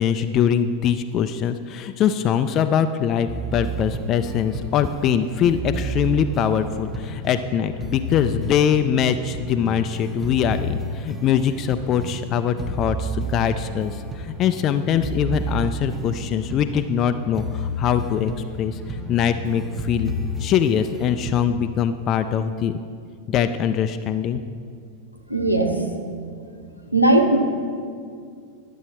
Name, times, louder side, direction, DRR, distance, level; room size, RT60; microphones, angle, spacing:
voice 1, 0.0-18.3 18.6-20.1 20.4-22.7 23.3-24.4, left 8 dB, 35° left, 9 dB, 0.3 m, -22 dB
sound 1, 3.3-21.4, right 1 dB, 10° right, 0.9 m, -31 dB
voice 2, 25.3-25.7 26.9-27.4, right 2 dB, 90° left, 3 dB, 0.9 m, -17 dB
11.0 x 7.0 x 4.3 m, 2.2 s
figure-of-eight pair, 90°, 0 cm